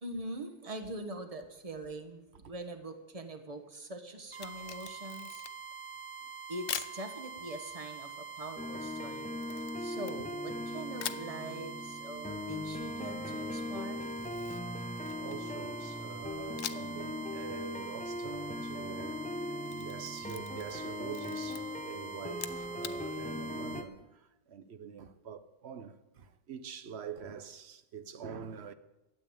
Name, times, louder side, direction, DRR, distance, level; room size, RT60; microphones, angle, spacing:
voice 1, 0.0-5.4 6.5-9.3 9.8-14.0, right 2 dB, 35° right, 1.3 m, -43 dB
Camera, 4.3-5.8 6.7-7.0 9.4-10.6 11.0-11.3 14.0-15.5 16.6-17.0 17.3-17.4 19.4-20.8 21.1-21.6 22.3-23.0, left 10 dB, 90° left, 0.9 m, -42 dB
sound 1, 4.3-23.9, right 6 dB, 10° right, 1.0 m, -45 dB
sound 2, 8.6-23.8, left 2 dB, 10° left, 0.5 m, -40 dB
voice 2, 15.2-19.4 19.7-28.7, right 7 dB, 75° right, 1.1 m, -45 dB
12.5 x 8.1 x 8.6 m
omnidirectional pair, 1.1 m